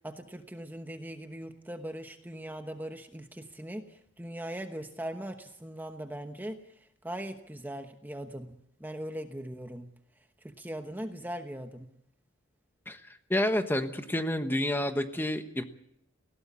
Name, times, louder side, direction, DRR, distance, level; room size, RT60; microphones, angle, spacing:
voice 1, 0.0-6.6 7.0-9.9 10.4-11.9, right 1 dB, 10° right, 6 dB, 1.0 m, -40 dB
voice 2, 13.3-15.6, left 1 dB, 10° left, 8 dB, 1.2 m, -29 dB
19.5 x 17.0 x 8.4 m, 0.74 s
head